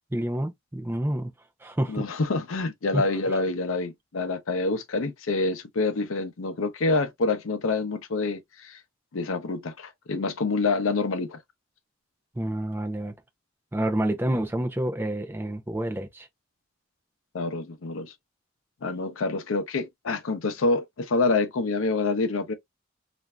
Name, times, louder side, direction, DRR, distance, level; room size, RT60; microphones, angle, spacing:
voice 1, 0.1-1.3 1.6-2.1 2.9-3.1 12.4-13.1 13.7-16.3, right 1 dB, 10° right, 0.4 m, -28 dB
voice 2, 1.9-8.8 9.1-11.4 17.3-18.1 18.8-22.5, left 3 dB, 85° left, 0.6 m, -27 dB
3.2 x 2.5 x 2.2 m
head